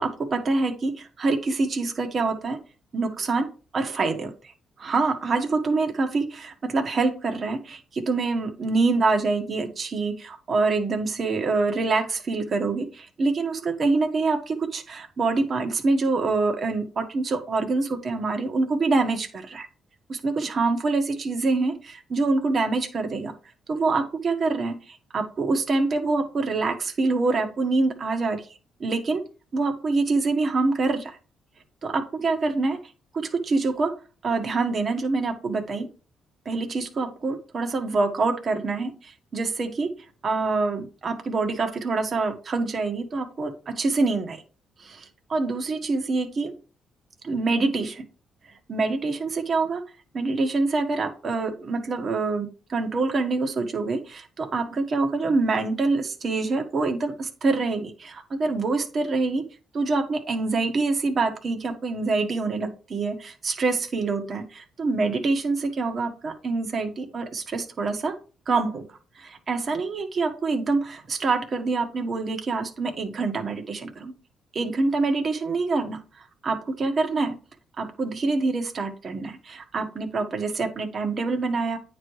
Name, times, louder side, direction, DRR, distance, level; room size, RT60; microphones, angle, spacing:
voice 1, 0.0-2.6 2.9-3.5 3.7-4.3 4.8-19.7 20.1-23.3 23.7-24.8 25.1-28.4 28.8-29.2 29.5-31.1 31.8-32.8 33.1-33.9 34.2-35.9 36.4-39.9 40.2-44.4 44.8-45.0 45.3-46.5 47.2-48.0 48.7-49.8 50.1-59.4 59.7-68.1 68.5-68.8 69.2-74.1 74.5-76.0 76.4-77.3 77.8-81.8, right 3 dB, 45° right, 5 dB, 1.4 m, -25 dB
9.2 x 3.2 x 4.8 m, 0.36 s
cardioid pair, 90°, 0 cm